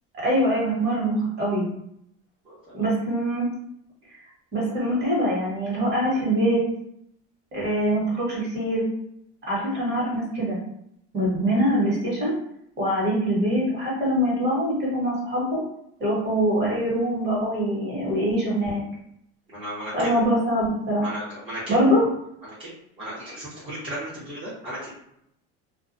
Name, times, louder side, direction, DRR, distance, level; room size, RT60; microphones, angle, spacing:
voice 1, 0.2-1.7 2.7-3.5 4.5-6.6 7.5-8.8 9.5-10.6 11.1-12.3 12.8-15.6 16.0-18.8 19.9-21.1 21.7-22.0 23.2-23.3, equal, 35° right, -5 dB, 1.2 m, -23 dB
voice 2, 2.5-2.8 19.5-20.2 21.0-21.7 22.6-22.7 23.0-24.8, right 1 dB, 15° right, -10 dB, 0.8 m, -35 dB
2.3 x 2.2 x 2.5 m, 0.75 s
cardioid pair, 135°, 31 cm